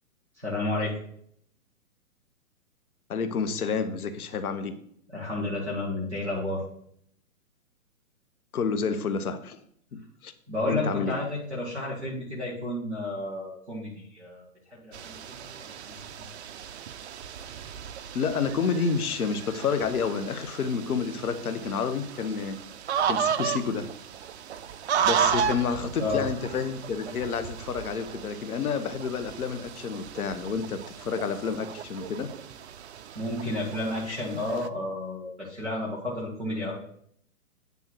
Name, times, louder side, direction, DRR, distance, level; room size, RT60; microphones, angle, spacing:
voice 1, 0.4-0.9 5.1-6.6 10.5-16.3 26.0-26.2 33.1-36.7, left 2 dB, ahead, -23 dB, 0.4 m, -32 dB
voice 2, 3.1-4.7 8.5-9.6 9.9-10.3 10.7-11.2 18.1-22.6 23.1-23.9 25.0-32.3, left 5 dB, 85° left, 10 dB, 1.1 m, -29 dB
sound 1, 14.9-34.7, right 8 dB, 50° right, 0.5 m, -34 dB
9.2 x 3.5 x 6.2 m, 0.67 s
hypercardioid pair, 155°, 43 cm